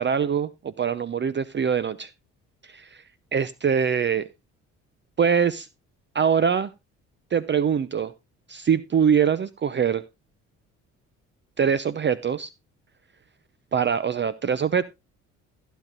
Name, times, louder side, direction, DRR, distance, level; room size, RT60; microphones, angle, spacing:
voice 1, 0.0-2.1 2.6-3.0 3.3-4.2 5.2-5.7 6.1-6.7 7.3-8.1 8.5-10.0 11.6-12.5 13.7-14.8, right 7 dB, 30° right, 17 dB, 0.7 m, -23 dB
16.0 x 9.3 x 2.5 m, 0.24 s
hypercardioid pair, 55°, 36 cm